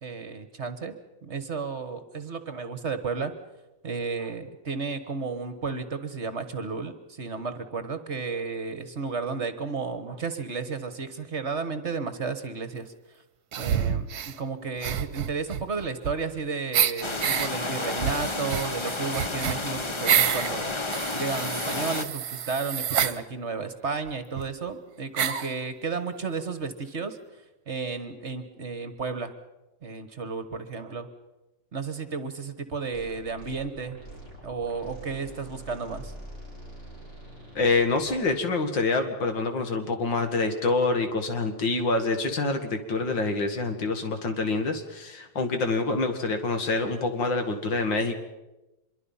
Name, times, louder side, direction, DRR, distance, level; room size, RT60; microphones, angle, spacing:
voice 1, 0.0-0.9 1.2-3.3 3.8-13.2 13.6-20.7 21.1-29.3 29.8-31.1 31.7-34.0 34.4-36.1, right 4 dB, 40° right, 10 dB, 1.4 m, -33 dB
sound 1, 13.5-14.4 14.8-16.4 16.7-17.5 18.0-20.5 20.9-23.2 24.1-24.2 24.4-24.5 25.2-25.5, right 9 dB, 60° right, 1.4 m, -28 dB
sound 2, 17.0-22.0, left 2 dB, 25° left, 0.6 m, -31 dB
sound 3, 32.9-38.1, right 1 dB, 45° left, 6.8 m, -44 dB
voice 2, 37.6-48.2, left 3 dB, 90° left, 7 dB, 2.7 m, -26 dB
25.0 x 22.5 x 5.6 m, 1.0 s
omnidirectional pair, 2.0 m